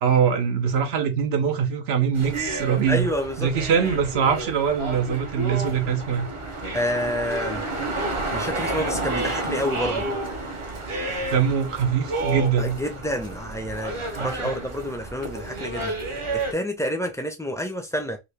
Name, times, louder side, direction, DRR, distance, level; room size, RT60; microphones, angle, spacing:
voice 1, 0.0-3.1 3.4-6.3 11.2-12.8 14.2-14.5, right 7 dB, 85° right, 0.9 m, -23 dB
sound 1, 2.1-16.5, right 2 dB, 35° right, 0.6 m, -30 dB
voice 2, 2.9-3.5 6.7-7.6 8.3-10.1 12.6-16.0 16.3-18.2, equal, 5° left, 0.5 m, -28 dB
2.7 x 2.6 x 3.3 m
omnidirectional pair, 1.0 m